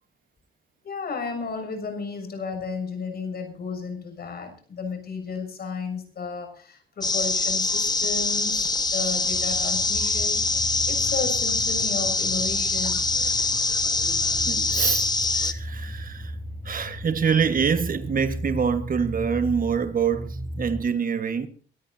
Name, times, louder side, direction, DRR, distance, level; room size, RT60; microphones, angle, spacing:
voice 1, 0.8-10.5 10.8-13.0, left 4 dB, 50° left, 6.9 m, -33 dB
sound 1, 7.0-15.5, left 3 dB, 20° left, 1.4 m, -24 dB
sound 2, 9.3-20.8, equal, 15° right, 2.6 m, -36 dB
voice 2, 14.4-15.1 15.3-16.4 16.6-21.5, right 6 dB, 45° right, 1.5 m, -25 dB
24.0 x 13.5 x 2.8 m
cardioid pair, 90°, 20 cm